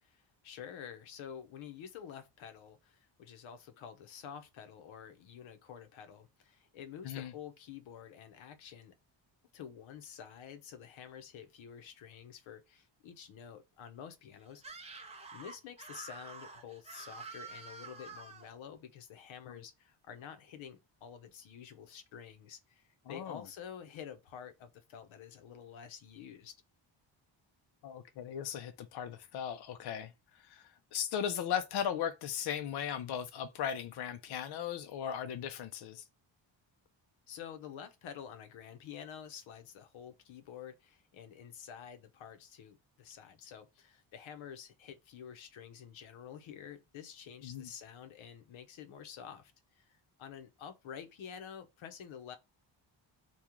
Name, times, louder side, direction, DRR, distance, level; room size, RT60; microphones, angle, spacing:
voice 1, 0.0-8.9 9.5-14.6 14.9-26.5 37.3-52.4, left 8 dB, 90° left, 0.8 m, -49 dB
Screaming, 14.6-18.5, right 4 dB, 15° right, 0.5 m, -48 dB
voice 2, 23.1-23.4 27.8-36.0 47.4-47.7, left 9 dB, 60° left, 0.5 m, -37 dB
2.9 x 2.3 x 3.5 m
cardioid pair, 145°, 46 cm